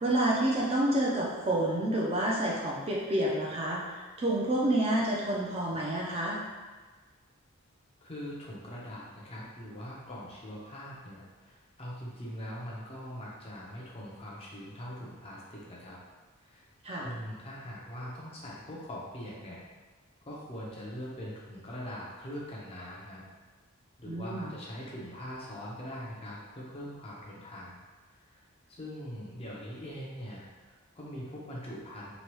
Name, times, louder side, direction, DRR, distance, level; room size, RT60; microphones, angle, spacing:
voice 1, 0.0-6.4 16.8-17.1 24.0-24.5, right 1 dB, 25° right, -4 dB, 0.4 m, -29 dB
voice 2, 8.0-16.0 16.4-16.7 17.0-19.6 20.3-23.2 24.0-27.8 28.3-32.1, equal, 25° left, -5 dB, 0.5 m, -42 dB
2.9 x 2.2 x 3.0 m, 1.4 s
head